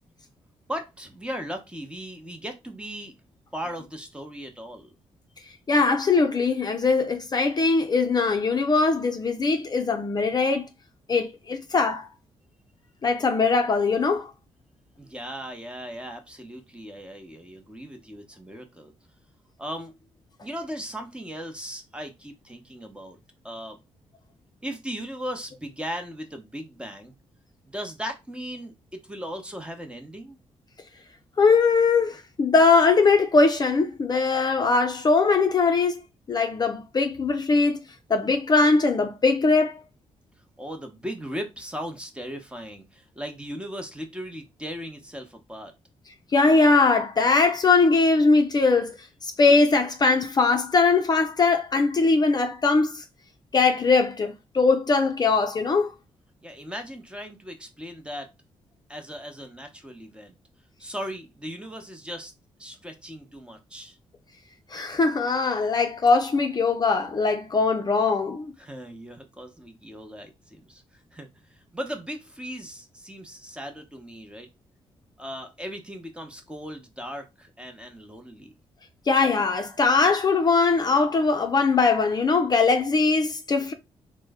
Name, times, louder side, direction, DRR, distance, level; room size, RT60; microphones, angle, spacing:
voice 1, 0.7-3.1 3.5-4.9 15.0-18.9 19.6-19.9 20.4-23.2 23.4-23.8 24.6-27.1 27.6-30.4 40.6-45.7 56.4-58.3 58.9-60.3 60.8-62.3 62.6-64.0 68.6-74.5 75.2-78.5, equal, 10° right, 0.9 m, -37 dB
voice 2, 5.7-10.7 11.1-12.1 13.0-14.3 31.4-36.0 36.3-37.8 38.1-39.8 46.3-49.0 49.2-53.0 53.5-55.9 64.7-68.5 79.1-83.7, left 4 dB, 40° left, 0.5 m, -21 dB
3.0 x 2.1 x 3.5 m
cardioid pair, 75°, 11 cm